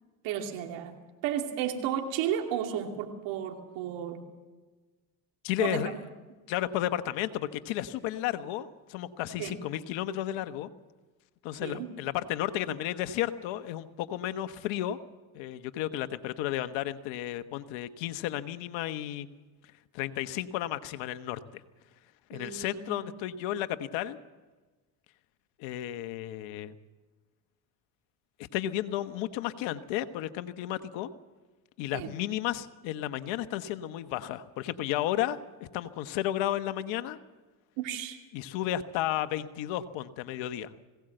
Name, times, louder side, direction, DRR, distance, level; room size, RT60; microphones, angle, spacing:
voice 1, 0.2-1.0 1.2-4.2 5.6-5.9 9.4-9.6 11.6-11.9 22.3-23.1 31.9-32.1 37.8-38.2, right 9 dB, 80° right, 3 dB, 2.8 m, -33 dB
voice 2, 5.4-5.9 6.5-10.7 11.4-15.0 15.3-19.3 19.9-21.6 22.3-24.2 25.6-26.7 28.5-31.1 31.8-37.2 38.3-40.7, left 13 dB, 80° left, 11 dB, 1.3 m, -33 dB
20.0 x 17.5 x 7.9 m, 1.3 s
supercardioid pair, 75°, 45 cm